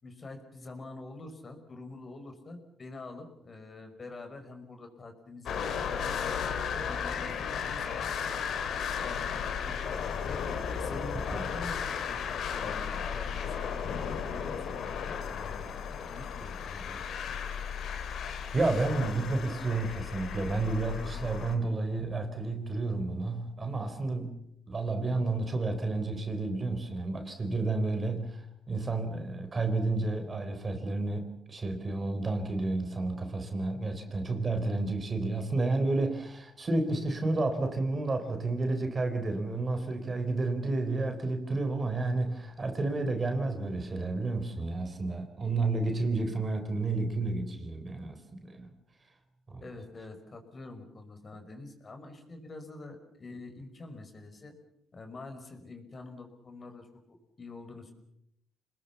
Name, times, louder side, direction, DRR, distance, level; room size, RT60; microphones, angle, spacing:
voice 1, 0.0-6.5 6.7-8.1 8.4-8.7 9.0-10.3 10.7-12.2 12.5-14.9 15.3-15.7 16.1-17.0 34.3-34.5 49.6-54.5 54.9-56.9 57.4-57.9, left 3 dB, 35° left, 6 dB, 5.5 m, -46 dB
sound 1, 5.5-21.6, left 7 dB, 70° left, 3.3 m, -35 dB
voice 2, 18.5-24.4 24.7-48.7 49.5-49.6, right 2 dB, 30° right, 7 dB, 4.0 m, -31 dB
27.5 x 20.5 x 7.2 m, 0.77 s
cardioid pair, 90°, 0 cm